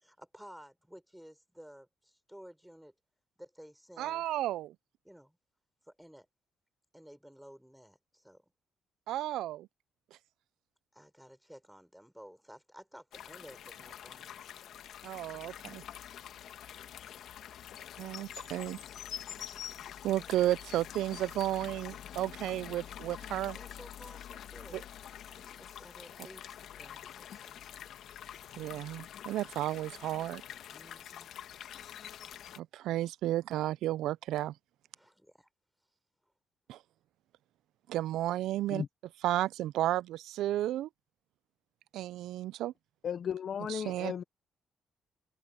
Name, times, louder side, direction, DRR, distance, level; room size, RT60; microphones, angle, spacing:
voice 1, 0.0-2.9 3.4-4.3 5.0-5.4 5.8-6.3 6.9-8.5 10.9-14.3 23.5-24.9 25.2-27.6 30.7-31.3 35.0-35.5, equal, ahead, 4.7 m, -54 dB
voice 2, 4.0-4.7 9.1-9.7 15.0-15.8 18.0-18.8 20.0-23.6 24.7-24.8 28.6-30.4 32.6-34.5 36.7-36.8 37.9-38.8 39.2-40.9 41.9-42.7 43.7-44.1, right 14 dB, 85° right, 0.3 m, -33 dB
sound 1, 13.1-32.6, left 10 dB, 75° left, 1.4 m, -46 dB
voice 3, 43.0-44.2, left 8 dB, 55° left, 0.6 m, -35 dB
cardioid pair, 90°, 0 cm